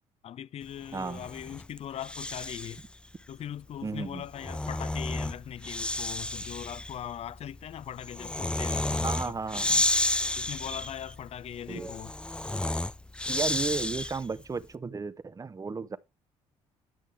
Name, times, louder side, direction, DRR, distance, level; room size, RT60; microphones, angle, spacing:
voice 1, 0.2-2.9 3.3-9.4 10.4-12.1, left 10 dB, 55° left, 0.6 m, -40 dB
Breathing, 0.9-2.9 4.1-14.4, left 2 dB, 10° left, 0.4 m, -32 dB
voice 2, 0.9-1.2 3.8-4.2 9.0-9.8 11.7-11.9 13.3-16.0, right 4 dB, 25° right, 0.8 m, -34 dB
10.5 x 6.2 x 3.3 m
supercardioid pair, 70°, 13 cm